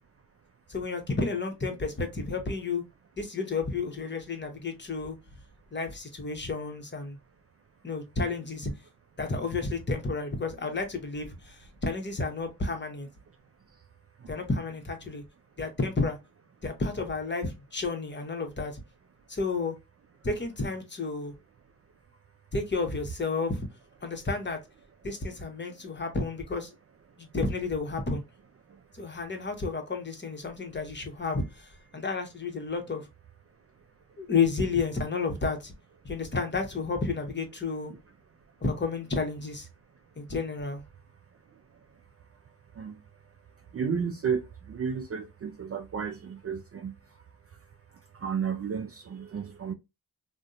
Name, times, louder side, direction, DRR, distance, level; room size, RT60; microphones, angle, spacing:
voice 1, 0.7-2.8 3.2-5.2 5.7-7.2 7.8-8.7 9.2-13.1 14.3-15.2 15.6-16.2 16.6-18.8 19.3-19.8 20.2-21.3 22.5-23.7 24.0-24.6 25.0-26.7 27.3-28.2 28.9-33.1 34.2-35.7 36.0-37.9 38.6-39.7 40.2-40.8, left 4 dB, 25° left, 0.9 m, -31 dB
voice 2, 43.7-46.9 48.1-49.7, right 6 dB, 35° right, 0.4 m, -32 dB
2.6 x 2.2 x 2.4 m
supercardioid pair, 50°, 44 cm